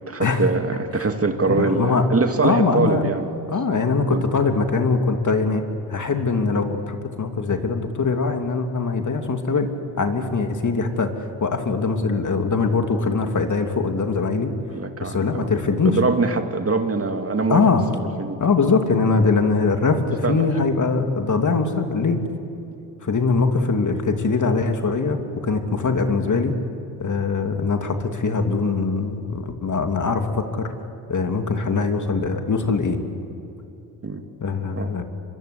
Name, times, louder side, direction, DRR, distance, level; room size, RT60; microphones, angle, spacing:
voice 1, 0.0-3.3 4.1-4.2 14.7-15.5 15.8-17.6 18.2-18.4 20.2-20.4 34.0-34.2 34.7-34.9, right 3 dB, 30° right, 6 dB, 2.4 m, -23 dB
voice 2, 1.5-2.1 2.4-3.0 3.5-5.6 5.9-9.7 10.0-14.5 15.0-16.0 17.5-17.9 18.4-22.2 23.0-26.6 27.0-30.7 31.1-33.0 34.4-35.0, left 4 dB, 40° left, 5 dB, 2.8 m, -22 dB
24.5 x 23.5 x 8.5 m, 2.8 s
supercardioid pair, 55°, 46 cm